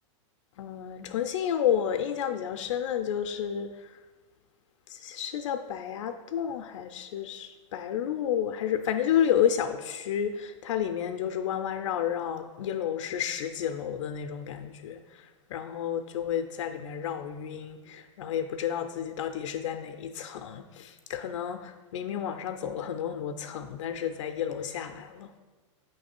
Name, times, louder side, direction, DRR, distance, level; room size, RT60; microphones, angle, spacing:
voice 1, 0.6-3.9 4.9-25.3, left 9 dB, 70° left, 6 dB, 0.4 m, -31 dB
7.9 x 3.2 x 4.4 m, 1.3 s
supercardioid pair, 160°, 17 cm